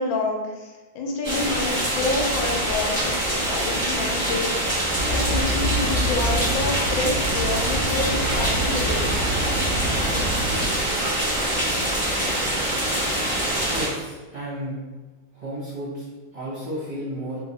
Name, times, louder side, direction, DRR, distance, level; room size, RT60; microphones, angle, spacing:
voice 1, 0.0-9.1, left 2 dB, 75° left, 0 dB, 1.3 m, -28 dB
sound 1, 1.2-13.9, right 1 dB, 5° left, 0.8 m, -25 dB
sound 2, 4.9-10.7, right 1 dB, 75° right, 0.6 m, -27 dB
voice 2, 13.7-14.8 15.3-17.4, equal, 40° right, -9 dB, 0.9 m, -33 dB
3.0 x 2.8 x 4.0 m, 1.2 s
omnidirectional pair, 2.2 m